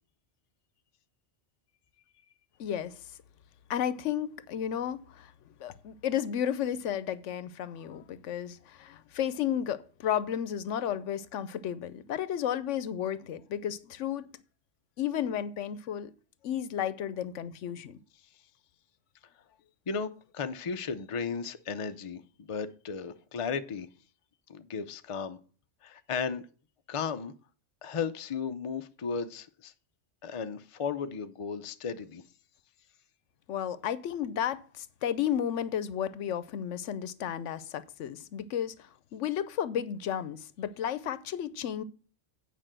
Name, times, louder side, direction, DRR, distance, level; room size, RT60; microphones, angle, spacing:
voice 1, 2.6-2.9 3.7-5.3 5.6-14.3 15.0-16.1 16.4-18.0 33.5-41.8, left 9 dB, 80° left, 1.0 m, -33 dB
voice 2, 19.9-23.9 24.5-25.4 25.8-26.4 26.9-27.3 27.8-29.7 30.2-32.2, left 6 dB, 35° left, 0.6 m, -35 dB
8.9 x 5.3 x 7.4 m
omnidirectional pair, 1.2 m